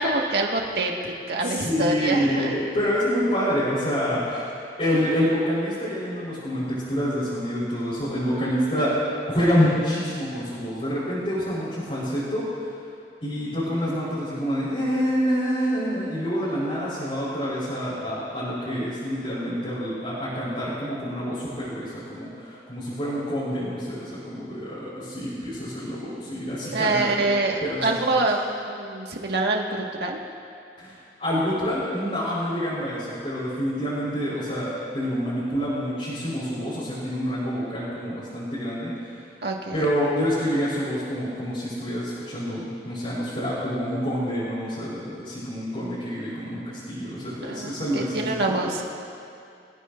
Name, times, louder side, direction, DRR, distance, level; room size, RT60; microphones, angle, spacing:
voice 1, 0.0-2.5 26.7-28.4 28.6-30.2 39.4-39.9 47.4-48.8, right 2 dB, 65° right, 0 dB, 1.9 m, -25 dB
voice 2, 1.4-4.5 4.8-8.9 9.3-12.7 13.2-27.3 27.6-28.1 30.8-39.2 39.7-48.6, equal, 35° left, -11 dB, 4.6 m, -27 dB
26.5 x 15.5 x 2.7 m, 2.5 s
head